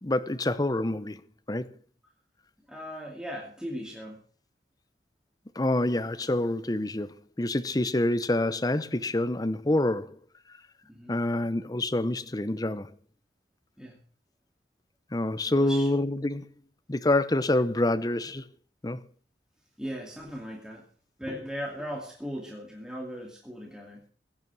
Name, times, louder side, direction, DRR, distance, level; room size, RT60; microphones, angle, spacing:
voice 1, 0.0-1.2 1.5-1.7 5.6-10.2 11.1-12.9 15.1-16.5 16.9-18.4 18.8-19.0, left 1 dB, 20° left, 0.7 m, -27 dB
voice 2, 2.7-4.2 10.9-11.2 13.8-14.0 15.6-15.9 19.8-20.8 21.2-24.0, equal, 5° right, 2.4 m, -38 dB
16.5 x 9.5 x 6.1 m
head